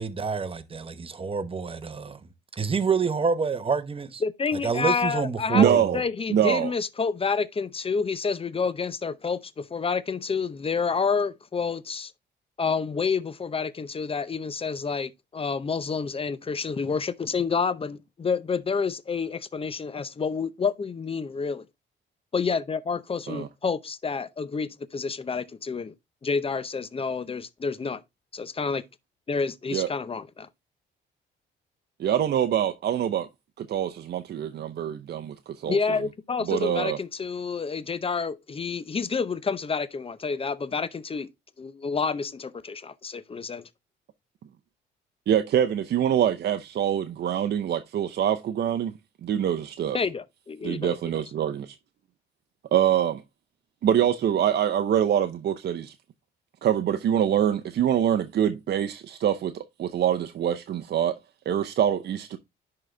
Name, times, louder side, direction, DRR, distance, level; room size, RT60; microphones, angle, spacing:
voice 1, 0.0-2.2 2.5-4.2 4.6-6.0, right 5 dB, 30° right, 0.9 m, -27 dB
voice 2, 4.2-5.7 5.9-12.1 12.6-21.7 22.3-25.9 26.2-28.0 28.3-28.8 29.3-30.5 35.7-41.3 41.6-43.7 49.9-51.2, left 5 dB, 30° left, 0.6 m, -29 dB
voice 3, 5.5-6.0 6.3-6.7 23.3-23.5 29.7-29.9 32.0-33.3 33.6-35.8 36.5-37.0 45.3-48.9 49.2-50.0 50.6-51.8 52.7-53.2 53.8-55.9 56.6-61.2 61.5-62.4, right 9 dB, 55° right, 0.6 m, -24 dB
10.5 x 3.9 x 3.2 m
cardioid pair, 90°, 20 cm